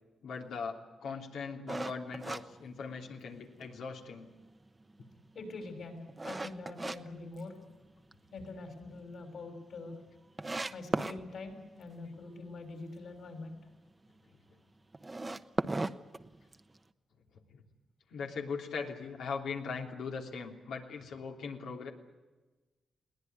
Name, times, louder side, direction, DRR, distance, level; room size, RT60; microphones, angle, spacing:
voice 1, 0.2-4.3 17.5-17.6 18.1-21.9, left 5 dB, 85° left, 2 dB, 3.1 m, -40 dB
sound 1, 1.7-3.4 3.8-3.9 4.4-7.0 7.4-8.1 8.5-8.6 8.9-9.0 9.2-9.3 9.9-10.0 10.4-11.2 14.9-16.8, right 2 dB, 20° right, 0.9 m, -36 dB
voice 2, 5.3-7.6 8.3-10.0 10.7-13.6, left 3 dB, 65° left, 5 dB, 6.3 m, -44 dB
21.5 x 18.5 x 9.5 m, 1.2 s
cardioid pair, 105°, 0 cm